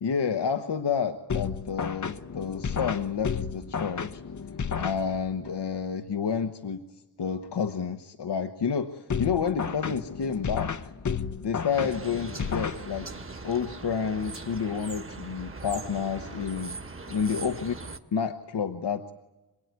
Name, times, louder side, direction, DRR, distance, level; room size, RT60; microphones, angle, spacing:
voice 1, 0.0-4.2 4.8-6.8 7.2-10.7 11.4-13.1 13.4-16.8 17.1-17.7 18.1-19.1, left 6 dB, 80° left, 7 dB, 1.2 m, -29 dB
sound 1, 1.3-5.5 9.1-13.3, left 6 dB, 45° left, 0.8 m, -33 dB
sound 2, 11.7-18.0, right 3 dB, 30° right, 1.6 m, -40 dB
27.0 x 19.0 x 9.6 m, 1.1 s
wide cardioid pair, 125°, 40 cm